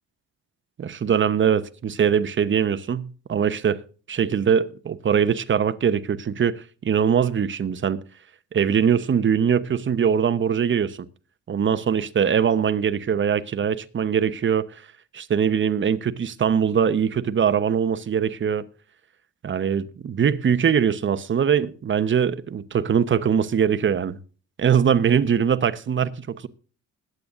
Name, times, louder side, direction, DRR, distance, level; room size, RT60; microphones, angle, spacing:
voice 1, 0.8-3.8 4.1-8.0 8.5-11.0 11.5-14.6 15.1-18.7 19.4-24.2 24.6-26.5, right 7 dB, 40° right, 1.0 m, -22 dB
21.0 x 8.8 x 2.6 m
cardioid pair, 90°, 30 cm